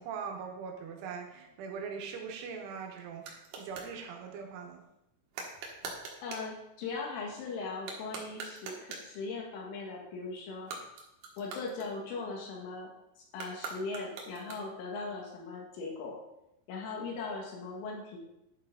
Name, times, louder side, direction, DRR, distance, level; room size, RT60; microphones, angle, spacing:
voice 1, 0.0-4.8, right 6 dB, 80° right, 2 dB, 3.6 m, -41 dB
sound 1, 2.2-3.9 5.3-6.5 7.7-9.2 10.5-12.3 13.3-14.9, right 4 dB, 65° right, 2.5 m, -44 dB
voice 2, 6.2-10.7 11.4-12.9 13.2-16.1 16.7-18.2, left 3 dB, 80° left, -1 dB, 4.3 m, -39 dB
10.5 x 6.7 x 3.9 m, 0.87 s
omnidirectional pair, 5.7 m